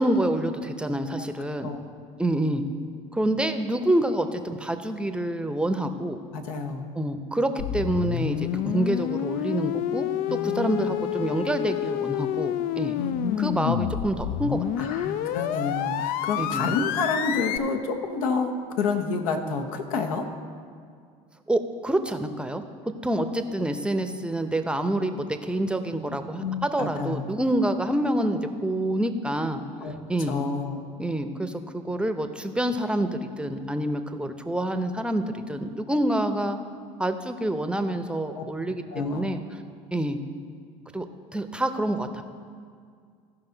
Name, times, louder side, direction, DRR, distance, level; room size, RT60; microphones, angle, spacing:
voice 1, 0.0-1.7 2.2-2.6 3.1-6.2 7.0-12.9 13.4-14.9 16.4-16.8 21.5-22.6 23.0-29.6 30.1-30.4 31.0-36.6 37.0-39.4 39.9-40.2 40.9-41.1 41.3-42.2, right 1 dB, 5° right, 8 dB, 0.7 m, -27 dB
voice 2, 6.3-6.9 10.3-10.9 12.9-13.9 14.8-20.2 23.1-23.2 26.1-27.2 29.8-30.0 30.3-30.8 38.3-38.4 38.9-39.3, left 4 dB, 80° left, 4 dB, 1.1 m, -29 dB
sound 1, 7.6-17.6, left 12 dB, 60° left, 0.4 m, -29 dB
15.0 x 5.4 x 3.9 m, 2.2 s
hypercardioid pair, 80°, 18 cm